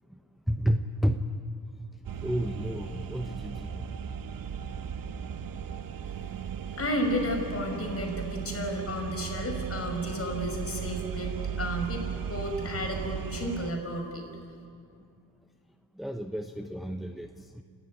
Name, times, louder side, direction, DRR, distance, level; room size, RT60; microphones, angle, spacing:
voice 1, 0.5-1.2 2.2-3.8 16.0-17.6, equal, ahead, 6 dB, 0.8 m, -31 dB
sound 1, 2.0-13.7, right 8 dB, 55° right, 1.0 m, -36 dB
voice 2, 6.8-14.2, left 1 dB, 35° left, 3 dB, 5.7 m, -32 dB
29.5 x 13.0 x 9.4 m, 2.4 s
cardioid pair, 85°, 40 cm